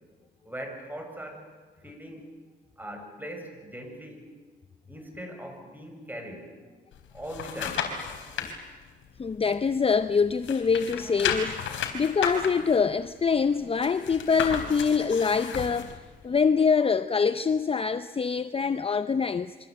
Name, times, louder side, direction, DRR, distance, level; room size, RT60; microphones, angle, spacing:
voice 1, 0.5-1.5 1.8-2.3 2.8-4.3 4.9-6.5 7.1-7.9 8.4-8.5, equal, 10° right, 7.3 m, -40 dB
sound 1, 6.9-8.5 9.0-10.1 10.4-15.9 16.4-16.5, left 7 dB, 75° left, 4.2 m, -33 dB
voice 2, 9.2-16.0 16.2-19.5, left 5 dB, 30° left, 0.7 m, -25 dB
27.0 x 24.5 x 8.1 m
cardioid pair, 90°, 20 cm